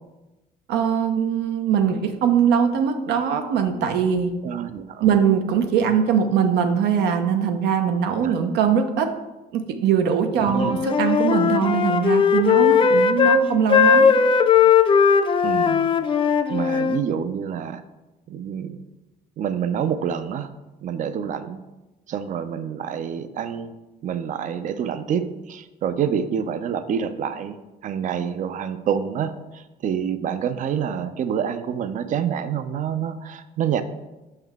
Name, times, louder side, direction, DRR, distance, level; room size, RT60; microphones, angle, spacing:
voice 1, 0.7-4.3 5.0-9.1 9.5-14.1, right 7 dB, 80° right, 7 dB, 0.7 m, -21 dB
voice 2, 4.4-5.1 8.2-8.3 10.5-10.8 15.4-15.9 16.2-17.8 18.3-18.8 19.4-20.5 20.8-21.6 22.1-23.7 24.0-33.8, right 8 dB, 50° right, 11 dB, 0.5 m, -27 dB
Wind instrument woodwind instrument, 10.6-13.4 13.7-17.0, left 6 dB, 30° left, 0.4 m, -18 dB
5.7 x 5.4 x 3.5 m, 1.1 s
cardioid pair, 110°, 17 cm